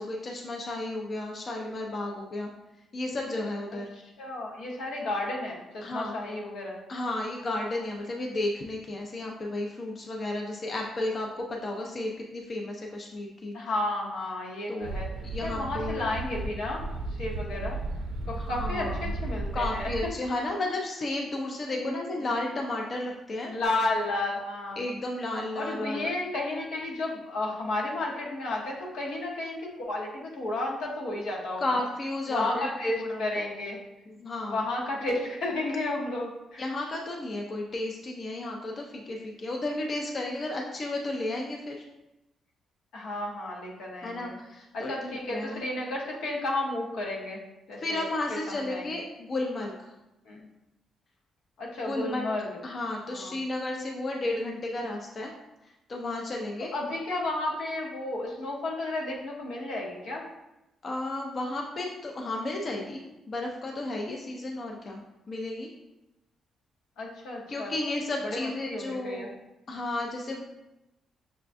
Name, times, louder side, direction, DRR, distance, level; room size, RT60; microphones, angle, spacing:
voice 1, 0.0-2.5 2.9-3.9 5.8-6.1 6.9-13.6 14.7-14.9 15.2-16.0 18.4-19.1 19.5-23.5 24.8-26.1 31.6-33.5 34.1-34.6 36.6-41.8 44.0-45.6 47.8-49.9 51.8-52.3 52.6-55.3 55.9-56.7 60.8-63.0 63.3-65.0 65.3-65.7 67.5-69.3 69.7-70.4, left 2 dB, 45° left, 0 dB, 0.5 m, -33 dB
voice 2, 3.7-6.8 13.5-15.1 15.4-16.8 17.1-17.8 18.2-19.9 21.7-22.0 22.3-22.4 23.5-24.8 25.5-31.7 32.3-33.8 34.5-36.6 42.9-44.3 44.7-47.4 47.7-48.9 50.3-50.5 51.6-52.5 53.1-53.4 56.7-60.2 67.0-67.9 68.2-69.3, left 2 dB, 85° left, -2 dB, 0.9 m, -32 dB
sound 1, 14.8-20.1, right 2 dB, 80° right, 0.4 m, -34 dB
5.9 x 2.2 x 2.5 m, 0.93 s
cardioid pair, 85°, 0 cm